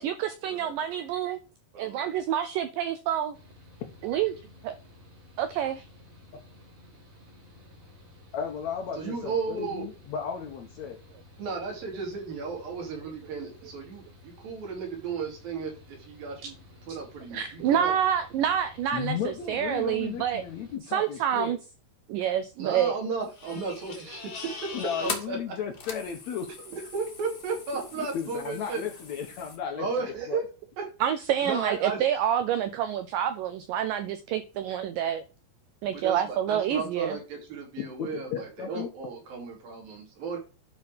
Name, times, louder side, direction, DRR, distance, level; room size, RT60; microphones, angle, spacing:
voice 1, 0.0-1.4 1.8-3.4 4.0-4.4 4.6-4.7 5.4-5.9 17.3-20.4 20.9-21.6 22.1-23.0 31.0-35.2 35.8-37.2, right 10 dB, 85° right, 1.9 m, -27 dB
voice 2, 1.7-2.1 8.9-9.9 11.4-16.6 16.9-17.9 22.6-24.3 25.0-25.4 26.9-28.8 29.7-30.4 30.8-30.9 31.4-32.0 35.9-40.4, right 4 dB, 65° right, 4.6 m, -34 dB
Mechanical fan, 3.3-20.8, left 2 dB, 30° right, 1.7 m, -53 dB
voice 3, 8.3-11.0 18.9-21.6 24.7-26.5 28.0-29.9 30.3-30.4 37.8-38.9, left 7 dB, 80° left, 1.6 m, -34 dB
sound 1, 23.2-29.6, left 4 dB, 45° left, 1.3 m, -41 dB
11.0 x 4.8 x 5.1 m
omnidirectional pair, 4.6 m